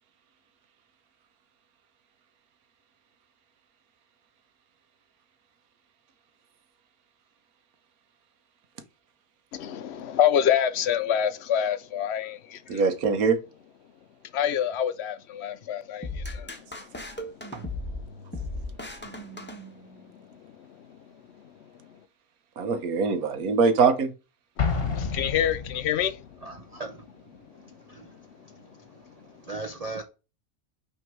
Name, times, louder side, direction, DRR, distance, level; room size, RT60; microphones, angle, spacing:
voice 1, 9.5-12.6 14.3-16.1 16.3-16.5 24.6-24.7 24.9-26.2, left 9 dB, 60° left, 0.7 m, -26 dB
voice 2, 12.7-13.4 22.6-24.1, right 5 dB, 75° right, 1.4 m, -22 dB
sound 1, 16.0-20.2, left 2 dB, 10° left, 1.2 m, -37 dB
Explosion, 24.6-26.2, left 5 dB, 40° left, 1.4 m, -29 dB
voice 3, 26.4-27.1 27.5-30.0, right 3 dB, 45° right, 0.5 m, -40 dB
6.1 x 3.5 x 6.0 m
omnidirectional pair, 1.5 m